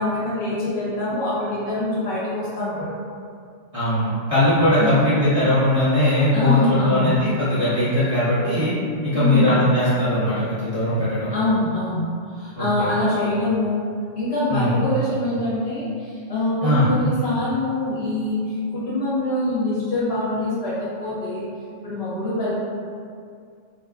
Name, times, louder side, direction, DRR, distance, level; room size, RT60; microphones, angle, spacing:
voice 1, 0.0-2.9 4.8-5.1 6.3-7.2 9.1-9.6 11.3-13.8 14.1-21.5 21.8-22.5, left 1 dB, 65° left, -9 dB, 0.9 m, -24 dB
voice 2, 3.7-8.7 9.0-11.3 12.6-12.9 14.5-14.7 16.6-16.9, left 1 dB, 30° right, -14 dB, 0.9 m, -20 dB
2.8 x 2.3 x 2.3 m, 2.2 s
omnidirectional pair, 1.2 m